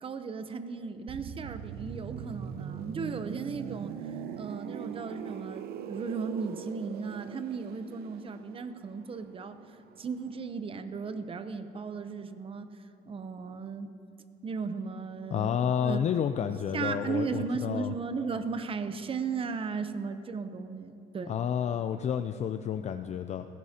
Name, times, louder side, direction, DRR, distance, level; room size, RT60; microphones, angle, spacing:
voice 1, 0.0-4.0 4.3-9.6 10.0-12.7 13.1-13.9 14.4-16.0 16.7-21.4, right 5 dB, 30° right, 10 dB, 0.7 m, -36 dB
sound 1, 1.1-10.7 11.0-11.2, right 8 dB, 65° right, 0.6 m, -41 dB
voice 2, 15.3-17.9 21.3-23.5, left 8 dB, 40° left, 8 dB, 0.4 m, -30 dB
18.0 x 16.0 x 2.9 m, 2.8 s
cardioid pair, 110°, 17 cm